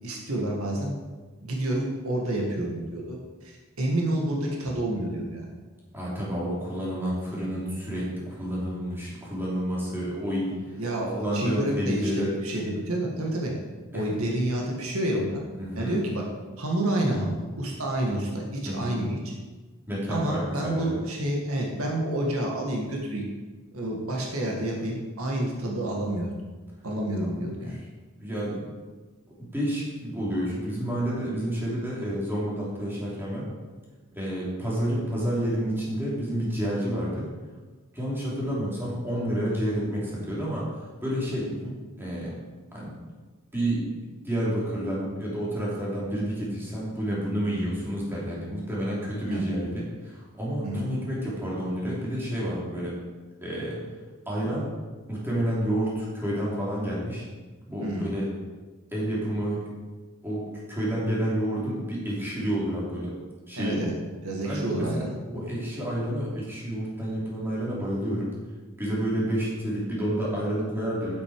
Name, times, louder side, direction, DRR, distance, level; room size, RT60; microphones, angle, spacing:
voice 1, 0.0-0.9 1.4-5.5 10.8-13.5 13.9-15.4 15.7-16.2 16.6-19.3 20.1-23.3 23.7-26.3 26.8-27.8 41.6-41.7 49.2-49.5 50.6-50.9 57.8-58.2 63.6-63.9 64.2-65.6, right 1 dB, 80° right, -1 dB, 2.0 m, -29 dB
voice 2, 5.9-10.8 11.1-12.4 13.9-14.0 15.6-16.0 18.7-19.0 19.9-21.0 27.6-27.8 28.2-28.7 29.4-33.5 34.1-37.3 37.9-40.7 41.0-41.5 42.0-42.3 42.7-42.9 43.5-43.9 44.2-53.0 53.4-53.8 54.2-54.7 55.1-57.2 57.7-58.3 58.9-59.7 60.2-63.1 63.5-63.8 64.4-68.3 68.8-71.2, equal, 10° right, -6 dB, 3.2 m, -29 dB
9.7 x 8.2 x 4.9 m, 1.3 s
head